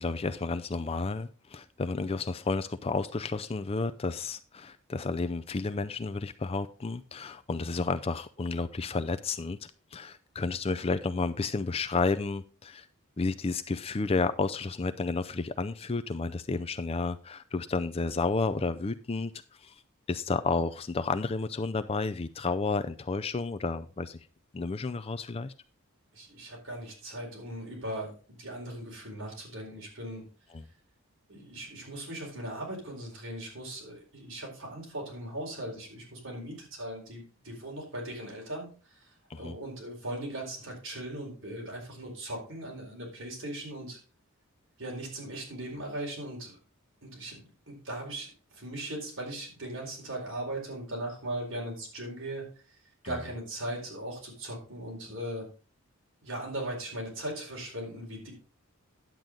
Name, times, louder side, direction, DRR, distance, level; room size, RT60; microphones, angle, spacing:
voice 1, 0.0-12.9 13.2-19.3 19.6-19.8 20.1-24.2 24.5-25.5 30.5-30.6 39.3-39.5 53.0-53.2, left 3 dB, 25° left, 0.4 m, -31 dB
voice 2, 26.1-30.2 31.3-39.1 39.3-44.0 44.8-46.5 47.0-48.3 48.5-52.5 53.0-55.5 56.2-58.3, right 1 dB, 55° right, 4.4 m, -39 dB
10.5 x 7.8 x 3.8 m
head